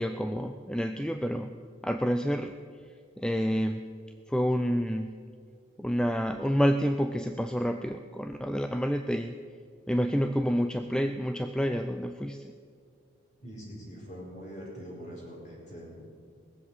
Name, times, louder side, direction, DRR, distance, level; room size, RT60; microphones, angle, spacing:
voice 1, 0.0-1.5 1.8-2.6 3.2-3.8 4.3-5.1 5.8-9.4 9.9-12.5, equal, 5° left, 7 dB, 0.4 m, -28 dB
voice 2, 13.4-15.9, equal, 40° left, -3 dB, 4.6 m, -43 dB
20.0 x 7.6 x 8.0 m, 2.2 s
head